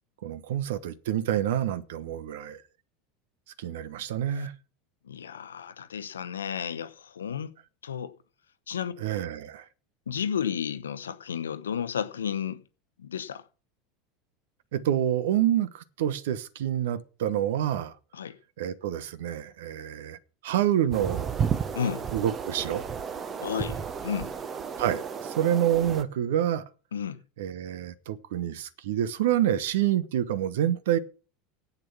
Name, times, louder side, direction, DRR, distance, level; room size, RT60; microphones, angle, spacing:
voice 1, 0.2-2.6 3.6-4.5 9.0-9.6 14.7-17.9 18.6-20.2 20.4-21.3 22.1-22.8 24.8-26.6 27.4-31.0, right 11 dB, 60° right, 1.0 m, -27 dB
voice 2, 5.0-7.5 7.8-8.1 8.7-8.9 10.1-12.6 13.0-13.4 18.1-18.3 21.7-22.0 23.4-24.3 26.9-27.2, left 8 dB, 75° left, 0.9 m, -32 dB
sound 1, 20.9-26.0, right 7 dB, 30° right, 1.1 m, -33 dB
11.0 x 8.4 x 5.8 m
figure-of-eight pair, 75°, 0 cm